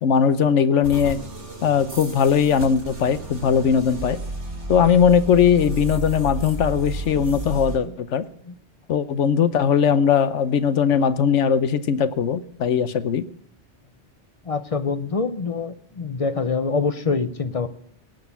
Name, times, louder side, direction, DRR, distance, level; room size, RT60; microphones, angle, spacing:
voice 1, 0.0-1.2 1.6-4.2 4.7-8.3 8.9-13.2, left 7 dB, 75° left, 13 dB, 1.1 m, -19 dB
sound 1, 0.8-7.8, right 1 dB, 70° right, 3.0 m, -33 dB
voice 2, 14.4-17.7, left 4 dB, 35° left, 11 dB, 0.7 m, -25 dB
18.0 x 6.6 x 8.3 m, 0.66 s
omnidirectional pair, 1.2 m